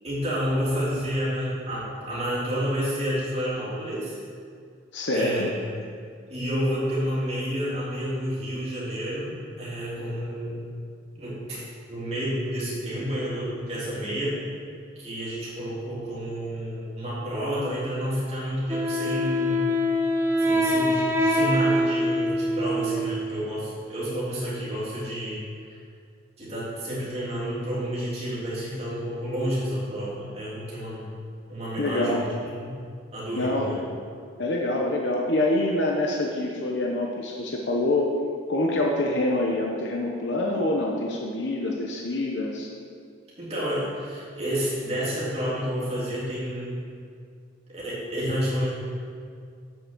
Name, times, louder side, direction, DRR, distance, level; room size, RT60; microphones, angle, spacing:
voice 1, 0.0-4.2 5.1-5.7 6.3-10.7 11.1-11.6 11.9-14.5 15.0-19.6 20.4-25.4 26.4-31.1 31.5-32.8 33.1-33.8 43.4-46.8 47.7-48.7, equal, 30° right, -7 dB, 3.0 m, -30 dB
voice 2, 4.9-5.5 31.8-32.2 33.4-33.7 34.4-38.1 38.5-42.7, left 2 dB, 70° left, -1 dB, 1.0 m, -26 dB
Wind instrument woodwind instrument, 18.7-23.5, equal, 10° right, 0.6 m, -24 dB
8.1 x 6.6 x 7.3 m, 2.2 s
head